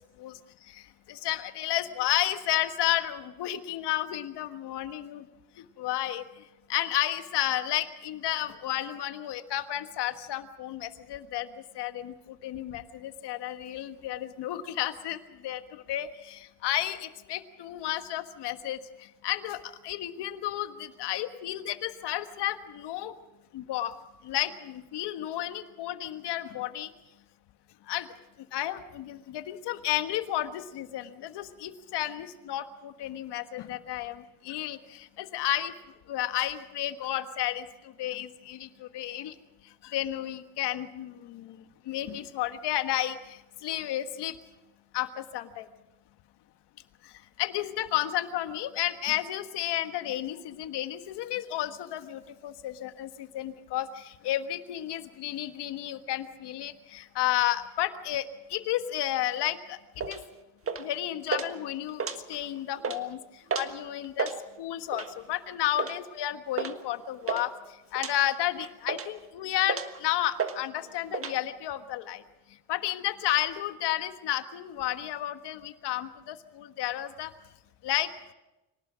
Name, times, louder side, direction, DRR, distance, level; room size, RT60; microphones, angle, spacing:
voice 1, 1.1-5.2 5.8-6.2 6.7-11.5 11.7-12.1 12.4-15.2 15.4-15.6 15.9-18.8 19.2-19.6 19.8-23.1 23.5-23.9 24.2-26.9 27.9-28.1 28.5-35.7 36.1-37.6 38.0-39.3 39.8-41.6 41.9-43.2 43.6-44.3 44.9-45.7 47.4-58.2 58.5-59.8 60.1-60.2 60.8-62.0 62.3-63.2 63.6-64.3 64.6-67.5 67.9-72.2 72.7-77.3 77.8-78.1, left 13 dB, 85° left, 9 dB, 1.5 m, -32 dB
sound 1, 60.0-60.2 60.7-61.0 61.3-61.5 61.9-62.5 62.8-63.0 63.5-63.7 64.0-64.4 64.9-65.2 65.8-66.0 66.6-66.8 67.0-67.4 67.9-68.1 68.6-69.2 69.6-70.0 70.4-70.6 70.8-71.3, right 5 dB, 35° right, 1.5 m, -32 dB
24.5 x 18.5 x 6.2 m, 1.0 s
cardioid pair, 110°, 40 cm